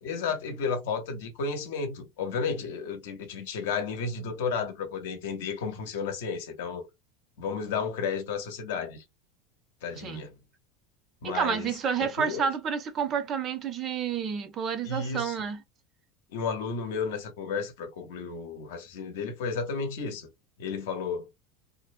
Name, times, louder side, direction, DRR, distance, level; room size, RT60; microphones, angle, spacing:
voice 1, 0.0-6.8 7.4-9.0 9.8-10.3 11.2-11.7 12.0-12.5 14.8-15.3 16.3-20.3 20.6-21.3, left 5 dB, 85° left, 0.7 m, -32 dB
voice 2, 10.0-10.3 11.2-15.6, right 7 dB, 35° right, 0.4 m, -30 dB
2.5 x 2.1 x 2.5 m
supercardioid pair, 145°, 0 cm